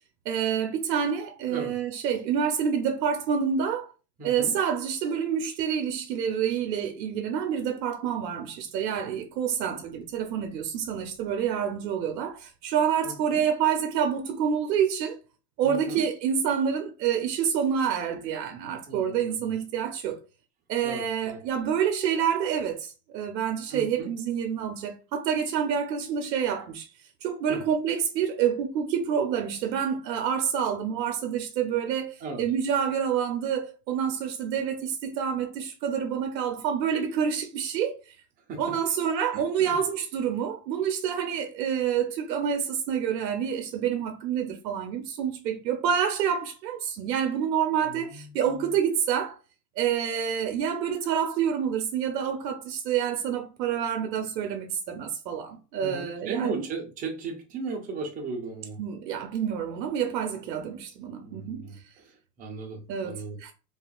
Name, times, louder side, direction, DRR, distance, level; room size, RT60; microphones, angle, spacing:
voice 1, 0.3-3.9 4.2-15.2 15.6-20.2 20.7-26.9 27.2-38.0 38.6-49.4 49.8-56.6 58.8-61.6 62.9-63.5, right 8 dB, 90° right, 0.6 m, -28 dB
voice 2, 4.2-4.6 6.5-6.6 13.0-13.4 15.6-16.1 18.9-19.5 20.8-21.4 23.7-24.1 27.5-27.6 32.2-32.5 38.5-38.7 39.3-39.8 47.8-48.7 55.8-58.8 61.2-61.8 62.0-63.4, right 4 dB, 20° right, 0.4 m, -37 dB
2.8 x 2.4 x 2.2 m
supercardioid pair, 130°, 50 cm